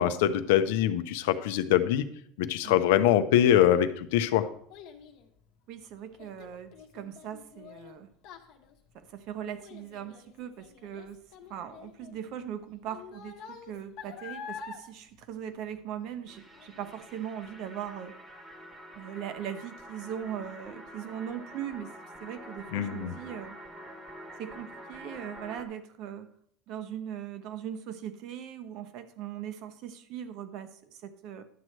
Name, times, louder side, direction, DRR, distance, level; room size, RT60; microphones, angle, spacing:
voice 1, 0.0-2.1 2.4-4.5 22.7-23.1, left 11 dB, 80° left, 11 dB, 0.6 m, -23 dB
Child speech kid speaking, 3.9-16.2 16.5-17.0 17.5-17.6, left 6 dB, 50° left, 1.0 m, -48 dB
voice 2, 5.7-8.1 8.9-11.2 11.5-18.1 18.9-21.9 22.2-23.6 24.4-26.3 26.7-31.4, right 9 dB, 45° right, 10 dB, 0.6 m, -40 dB
sound 1, 16.3-25.6, equal, 10° right, 1.0 m, -47 dB
11.0 x 7.6 x 3.2 m, 0.66 s
cardioid pair, 175°, 0 cm